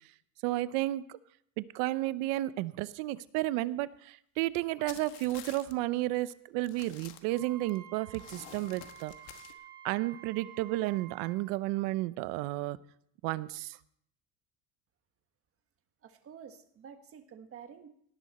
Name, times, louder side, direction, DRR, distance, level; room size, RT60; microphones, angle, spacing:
voice 1, 0.4-1.2 1.6-9.1 9.8-12.8 13.2-13.8, right 17 dB, 90° right, 16 dB, 0.8 m, -32 dB
sound 1, 4.9-5.7 6.2-6.3 6.6-7.8 8.1-9.5, left 12 dB, 75° left, 1.3 m, -49 dB
Wind instrument woodwind instrument, 7.3-11.4, right 11 dB, 65° right, 2.8 m, -51 dB
voice 2, 16.0-17.9, right 7 dB, 35° right, 7 dB, 1.5 m, -50 dB
18.0 x 10.5 x 4.2 m, 0.68 s
cardioid pair, 145°, 39 cm